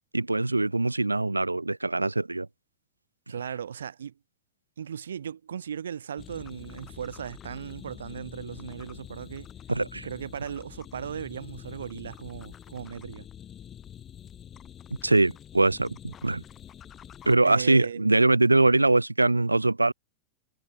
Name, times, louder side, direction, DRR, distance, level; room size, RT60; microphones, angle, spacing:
voice 1, 0.1-2.5 9.7-10.1 15.0-16.0 16.2-16.4 17.3-19.9, right 2 dB, 85° right, 0.3 m, -22 dB
voice 2, 3.3-4.1 4.8-9.5 10.0-13.3 17.4-18.1, right 8 dB, 65° right, 2.4 m, -37 dB
sound 1, 6.2-17.4, left 9 dB, 25° left, 3.7 m, -46 dB
figure-of-eight pair, 90°, 0 cm